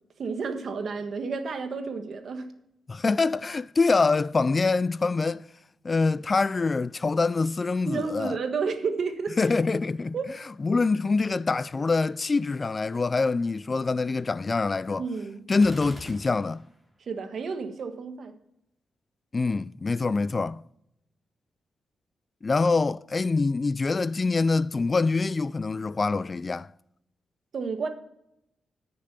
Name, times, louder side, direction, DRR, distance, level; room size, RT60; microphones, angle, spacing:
voice 1, 0.2-2.5 7.9-9.4 10.1-10.3 15.0-15.4 17.1-18.3 27.5-27.9, right 5 dB, 60° right, 1.4 m, -31 dB
voice 2, 2.9-5.4 5.8-8.4 9.4-10.1 10.6-15.0 15.5-16.6 19.3-20.6 22.4-26.7, left 3 dB, 35° left, 0.3 m, -25 dB
Gunshot gunfire, 15.5-16.8, equal, ahead, 3.0 m, -44 dB
9.7 x 6.7 x 6.7 m
cardioid pair, 95°, 0 cm